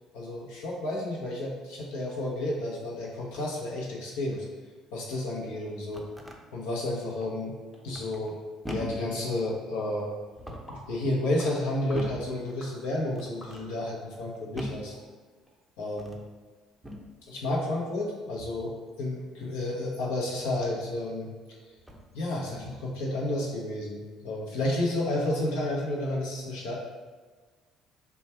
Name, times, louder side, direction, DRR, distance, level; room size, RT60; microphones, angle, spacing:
voice 1, 0.1-4.5 4.9-6.0 6.5-7.5 7.8-8.3 8.7-10.1 10.7-15.0 15.8-16.1 17.2-18.7 19.0-21.3 22.1-26.8, left 1 dB, 80° left, -3 dB, 0.8 m, -31 dB
sound 1, 5.9-6.4 7.9-8.3 8.6-9.1 10.3-10.8 11.9-12.4 13.1-13.7 14.5-14.9 15.9-16.3 16.8-17.1 18.4-18.7 20.8-20.9 21.8-22.1 22.5-22.9, left 1 dB, ahead, 0.5 m, -41 dB
sound 2, 7.2-7.4 7.7-7.8 8.3-8.4 8.7-8.8 9.3-9.5 10.0-10.1 10.7-10.9 11.4-11.5 11.9-12.1 12.6-12.8 13.4-13.8 14.3-14.4 14.9-15.0 15.5-15.6, equal, 40° left, 1.1 m, -49 dB
3.1 x 2.3 x 4.3 m, 1.4 s
hypercardioid pair, 65°, 0 cm